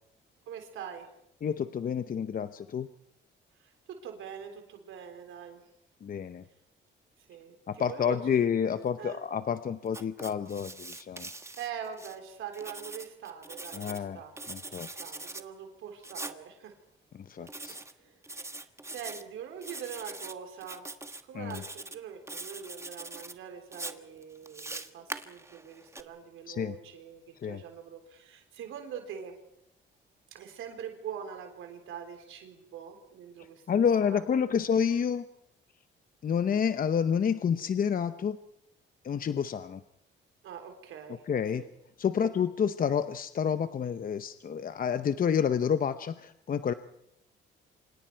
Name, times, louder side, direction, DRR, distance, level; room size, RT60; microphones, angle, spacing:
voice 1, 0.5-1.1 3.6-5.6 7.2-8.5 9.0-9.2 11.6-14.3 15.0-16.7 17.4-18.6 18.9-20.9 21.3-29.4 30.3-33.8 34.1-34.3 40.4-41.2 41.6-41.7 42.2-42.3, right 8 dB, 80° right, 5 dB, 3.6 m, -43 dB
voice 2, 1.4-2.9 6.0-6.4 7.7-11.3 13.7-14.9 17.1-17.8 21.3-21.6 26.5-26.8 27.4-27.6 33.7-35.2 36.2-38.4 39.0-39.8 41.3-41.6 42.0-46.7, left 7 dB, 45° left, 11 dB, 0.9 m, -29 dB
Writing, 9.9-12.2 12.5-14.0 14.4-15.4 16.0-16.4 17.5-17.9 18.2-19.2 19.6-20.3 20.6-21.2 21.5-22.0 22.3-23.3 23.7-26.0, right 2 dB, 15° right, 1.5 m, -42 dB
28.0 x 26.0 x 4.6 m, 0.76 s
cardioid pair, 90°, 20 cm